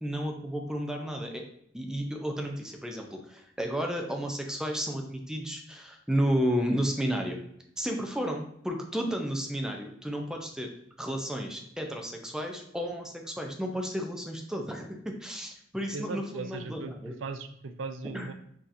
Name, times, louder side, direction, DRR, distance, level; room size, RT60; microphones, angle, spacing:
voice 1, 0.0-1.4 1.7-7.4 7.8-10.7 11.0-17.1 18.1-18.3, equal, 5° right, 2 dB, 0.5 m, -32 dB
voice 2, 15.9-18.3, right 4 dB, 85° right, 8 dB, 0.4 m, -38 dB
6.0 x 2.8 x 2.6 m, 0.71 s
head